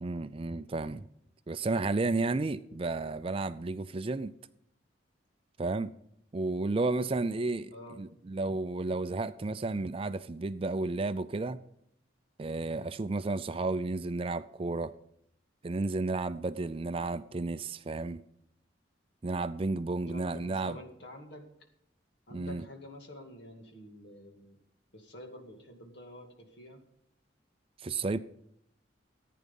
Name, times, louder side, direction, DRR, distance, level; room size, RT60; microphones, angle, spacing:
voice 1, 0.0-1.1 1.5-4.3 5.6-5.9 6.3-11.6 12.4-14.9 15.6-18.2 19.2-20.8 22.3-22.6 27.8-28.2, right 3 dB, 30° right, 0.4 m, -32 dB
voice 2, 20.1-21.5 22.3-24.6 24.9-26.8, left 1 dB, 60° left, 2.2 m, -48 dB
15.0 x 9.4 x 5.3 m
head